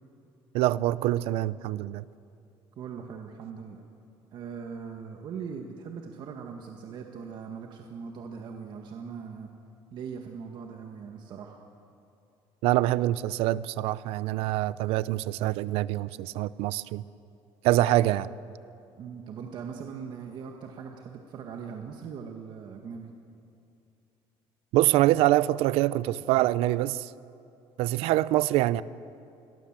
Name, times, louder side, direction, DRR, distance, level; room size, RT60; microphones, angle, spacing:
voice 1, 0.5-2.0 12.6-17.0 17.6-18.3 24.7-27.1 27.8-28.8, right 15 dB, 90° right, 0.6 m, -25 dB
voice 2, 2.8-3.8 4.3-9.5 9.9-11.6 18.9-23.1, right 6 dB, 50° right, 1.7 m, -40 dB
27.5 x 22.0 x 7.5 m
cardioid pair, 155°, 10 cm